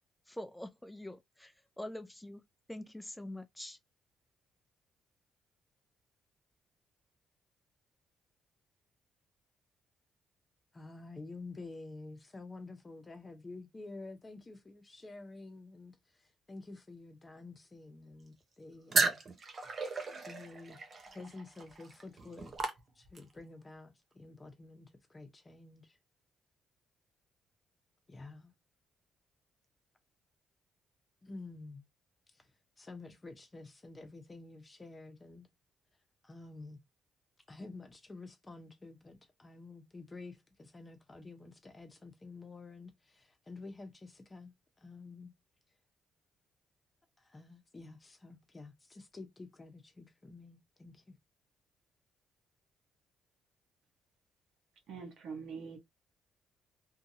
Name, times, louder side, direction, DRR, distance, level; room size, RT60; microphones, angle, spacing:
voice 1, 0.3-2.4 2.7-3.8, left 1 dB, 10° left, 0.4 m, -45 dB
voice 2, 10.7-19.2 20.2-20.8 21.1-26.0 28.1-28.5 31.2-31.8 32.8-35.5 36.2-36.8 37.5-44.5 44.8-45.3 47.2-51.2, left 3 dB, 25° left, 0.8 m, -50 dB
sound 1, 18.9-23.4, right 3 dB, 40° right, 0.8 m, -35 dB
voice 3, 54.9-55.8, right 5 dB, 80° right, 1.0 m, -43 dB
2.8 x 2.6 x 2.6 m
cardioid pair, 90°, 0 cm